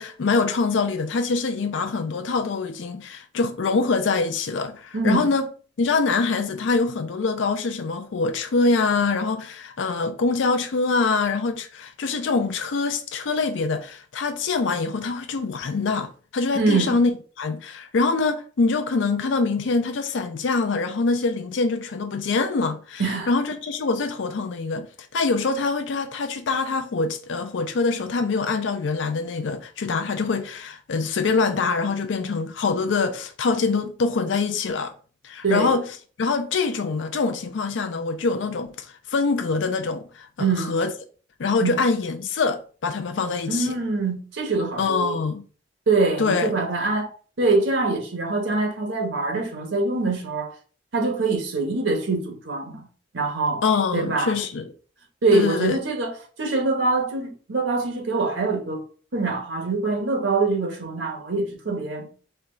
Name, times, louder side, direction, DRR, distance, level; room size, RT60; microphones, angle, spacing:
voice 1, 0.0-5.5 5.8-17.1 17.4-24.9 25.1-34.9 35.2-35.9 36.2-40.3 40.6-40.9 41.4-43.7 44.8-45.4 46.2-46.6 53.6-54.7 55.3-55.8, left 4 dB, 85° left, 0.5 m, -24 dB
voice 2, 4.9-5.3 16.5-17.0 23.0-23.3 35.4-35.7 40.4-40.8 41.6-41.8 43.5-45.2 45.9-47.1 47.4-50.5 50.9-52.9 53.1-53.6 53.9-54.3 55.2-58.8 59.1-62.1, right 3 dB, 85° right, 1.0 m, -24 dB
4.4 x 2.2 x 3.7 m
head